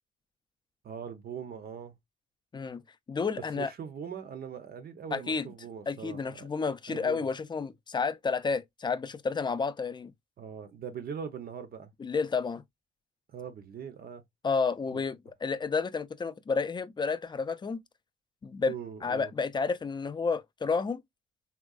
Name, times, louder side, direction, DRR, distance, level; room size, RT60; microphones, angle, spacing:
voice 1, 0.8-2.0 3.5-6.5 6.9-7.3 10.4-11.9 13.3-14.2 14.9-15.0 18.7-19.3, right 7 dB, 50° right, 0.6 m, -41 dB
voice 2, 3.1-3.7 5.1-5.5 5.9-10.1 12.0-12.6 14.4-17.8 18.4-18.7 19.0-21.0, left 5 dB, 20° left, 0.4 m, -31 dB
3.6 x 2.2 x 2.3 m
cardioid pair, 90°, 20 cm